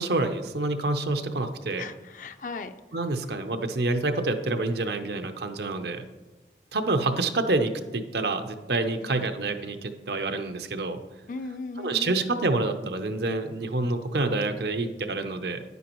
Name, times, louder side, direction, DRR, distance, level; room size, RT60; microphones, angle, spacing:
voice 1, 0.0-1.8 2.9-6.0 6.7-11.0 11.8-15.6, right 2 dB, 65° right, 8 dB, 0.7 m, -27 dB
voice 2, 1.8-2.7 9.0-9.3 11.3-12.3, left 3 dB, 45° left, 9 dB, 0.5 m, -37 dB
10.0 x 9.2 x 3.0 m, 1.2 s
head